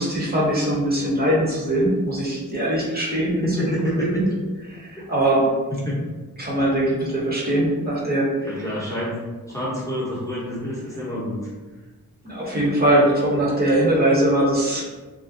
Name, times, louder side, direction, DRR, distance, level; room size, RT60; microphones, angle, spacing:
voice 1, 0.0-3.4 3.9-4.2 4.7-5.4 6.4-8.5 12.2-14.8, right 1 dB, 25° right, -6 dB, 0.7 m, -21 dB
voice 2, 3.4-4.4 5.0-5.1 5.7-6.0 8.4-9.2 9.5-11.5, equal, 10° left, -8 dB, 0.7 m, -27 dB
3.3 x 2.4 x 2.5 m, 1.2 s
wide cardioid pair, 170°, 36 cm